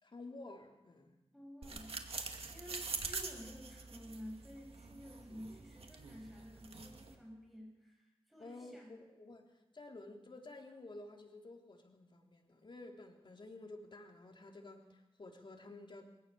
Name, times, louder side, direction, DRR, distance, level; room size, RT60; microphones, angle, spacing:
voice 1, 0.0-1.1 2.7-2.8 8.4-9.5 9.7-16.1, left 2 dB, 55° left, 2 dB, 3.5 m, -52 dB
voice 2, 1.3-1.9 2.5-8.9, equal, ahead, -2 dB, 7.6 m, -52 dB
sound 1, 1.6-7.2, right 4 dB, 80° right, 2.3 m, -45 dB
24.0 x 18.0 x 7.0 m, 0.99 s
wide cardioid pair, 85°, 10 cm